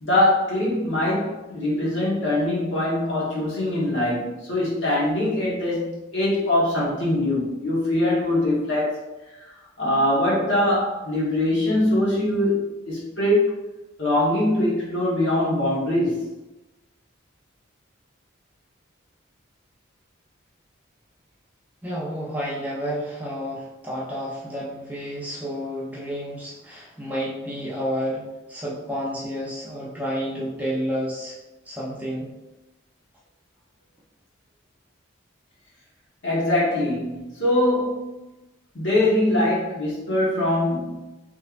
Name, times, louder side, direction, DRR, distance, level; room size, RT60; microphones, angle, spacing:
voice 1, 0.0-9.0 9.8-13.5 14.0-16.2 36.2-38.2 38.7-41.1, left 1 dB, 70° left, -6 dB, 1.3 m, -22 dB
voice 2, 21.8-28.2 28.5-31.4 31.7-32.3, equal, 10° right, -6 dB, 0.6 m, -30 dB
3.2 x 3.1 x 2.5 m, 1.0 s
head